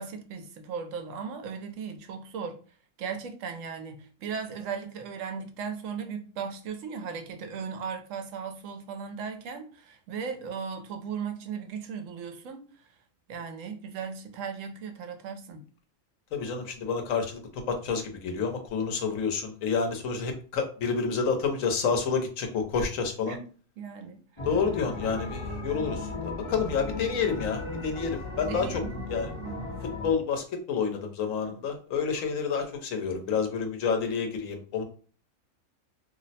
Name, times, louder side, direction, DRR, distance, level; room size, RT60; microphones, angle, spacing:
voice 1, 0.0-2.6 3.0-12.6 13.3-15.6 23.3-23.4 23.8-24.2 28.5-29.8 31.4-31.6, right 6 dB, 80° right, 6 dB, 1.0 m, -37 dB
voice 2, 16.3-17.4 17.7-23.3 24.4-28.8 29.1-29.3 30.0-34.8, left 5 dB, 85° left, 5 dB, 1.1 m, -29 dB
sound 1, 24.4-30.1, left 2 dB, 35° left, 0.5 m, -36 dB
2.7 x 2.0 x 4.0 m, 0.39 s
omnidirectional pair, 1.3 m